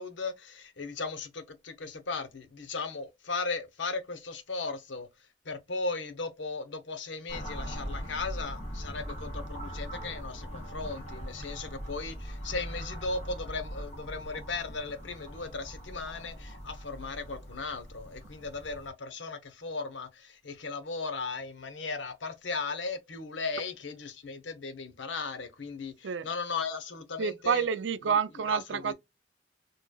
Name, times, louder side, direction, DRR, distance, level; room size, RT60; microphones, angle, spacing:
voice 1, 0.0-5.1 5.4-27.7 28.0-28.2 28.5-28.9, left 4 dB, 80° left, 0.9 m, -37 dB
sound 1, 7.3-18.9, equal, 40° left, 1.8 m, -41 dB
voice 2, 27.2-28.9, right 6 dB, 75° right, 0.5 m, -28 dB
4.5 x 3.1 x 2.3 m
head